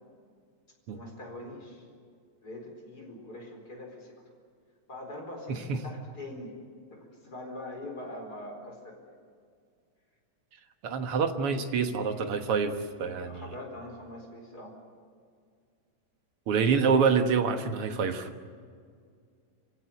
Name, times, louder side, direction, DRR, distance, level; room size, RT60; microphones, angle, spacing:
voice 1, 0.9-1.9 2.4-4.1 4.9-6.5 6.9-9.1 13.2-14.8 16.8-16.9, left 1 dB, 30° left, 1 dB, 4.8 m, -43 dB
voice 2, 5.5-5.8 10.8-13.4 16.5-18.3, right 5 dB, 55° right, 7 dB, 1.9 m, -26 dB
26.5 x 17.0 x 9.3 m, 2.1 s
omnidirectional pair, 3.5 m